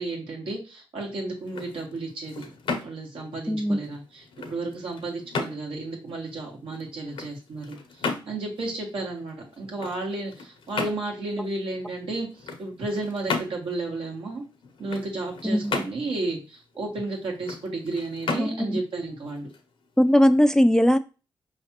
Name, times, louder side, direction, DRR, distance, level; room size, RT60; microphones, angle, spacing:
voice 1, 0.0-2.5 2.8-14.4 14.8-19.5, right 2 dB, 75° right, 0 dB, 1.6 m, -33 dB
sound 1, 1.3-20.2, left 4 dB, 70° left, 0.8 m, -36 dB
voice 2, 3.5-3.8 15.4-15.8 18.4-18.8 20.0-21.0, equal, 5° left, 10 dB, 0.4 m, -20 dB
4.7 x 3.2 x 2.9 m, 0.32 s
supercardioid pair, 50°, 9 cm